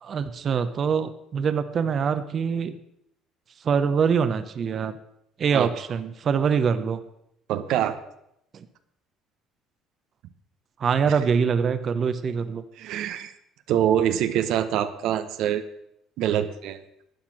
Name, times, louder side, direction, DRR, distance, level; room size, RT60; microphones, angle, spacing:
voice 1, 0.0-2.8 3.6-4.9 5.4-7.0 8.5-8.7 10.8-12.6, right 6 dB, 45° right, 10 dB, 0.9 m, -24 dB
voice 2, 7.5-8.0 11.1-11.2 12.8-13.3 13.7-15.6 16.2-16.8, right 10 dB, 75° right, 9 dB, 0.9 m, -25 dB
11.5 x 9.1 x 6.2 m, 0.78 s
cardioid pair, 105°, 0 cm